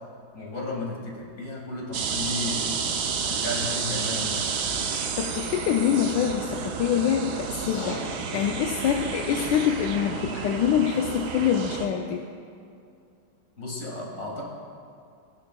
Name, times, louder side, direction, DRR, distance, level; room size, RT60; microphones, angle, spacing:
voice 1, 0.3-3.0 3.3-4.5 13.6-14.4, left 2 dB, 40° left, -2 dB, 2.2 m, -34 dB
sound 1, 1.9-11.9, right 6 dB, 65° right, 1.1 m, -31 dB
voice 2, 4.9-12.2, left 9 dB, 75° left, 3 dB, 1.1 m, -25 dB
sound 2, 5.9-11.0, left 2 dB, 55° left, 1.5 m, -42 dB
16.0 x 10.5 x 2.3 m, 2.4 s
omnidirectional pair, 2.3 m